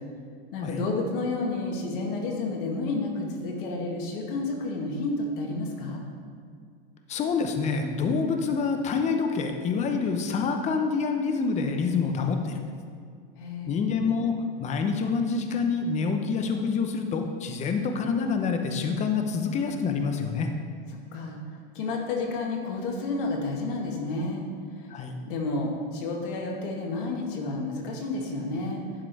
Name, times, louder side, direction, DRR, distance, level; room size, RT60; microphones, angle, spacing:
voice 1, 0.5-6.0 13.4-13.9 21.1-21.4 21.8-24.4 25.3-28.8, left 3 dB, 65° left, 0 dB, 2.0 m, -30 dB
voice 2, 7.1-12.5 13.7-14.3 14.6-20.5 24.9-25.2, left 5 dB, 25° left, 5 dB, 0.8 m, -27 dB
11.5 x 4.9 x 4.7 m, 2.1 s
supercardioid pair, 135°, 29 cm